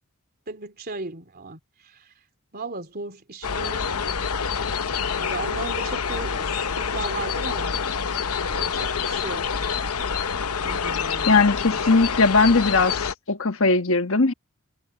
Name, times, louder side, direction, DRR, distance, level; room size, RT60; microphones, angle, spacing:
voice 1, 0.5-1.6 2.5-4.0 5.2-6.5 6.8-7.8 8.5-9.4 10.6-11.8, right 3 dB, 45° right, 3.6 m, -36 dB
sound 1, 3.4-13.1, left 6 dB, 80° left, 0.9 m, -27 dB
voice 2, 11.3-14.3, left 3 dB, 60° left, 1.5 m, -19 dB
head